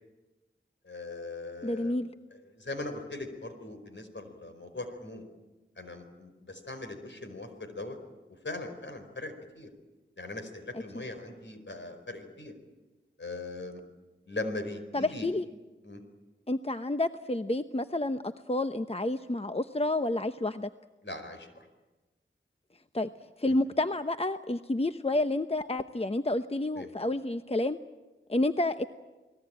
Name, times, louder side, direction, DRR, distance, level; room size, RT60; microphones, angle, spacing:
voice 1, 0.8-1.9 2.3-5.2 5.8-8.0 8.4-9.7 10.2-12.5 13.2-13.8 14.3-15.3 15.8-16.0 21.0-21.7 23.5-23.6 26.7-26.9, left 2 dB, 65° left, 6 dB, 4.7 m, -40 dB
voice 2, 1.6-2.1 14.9-15.4 16.5-20.7 22.9-23.1 23.4-27.8 28.3-28.9, left 2 dB, 30° left, 9 dB, 0.9 m, -29 dB
29.0 x 20.0 x 8.9 m, 1.2 s
wide cardioid pair, 45°, 21 cm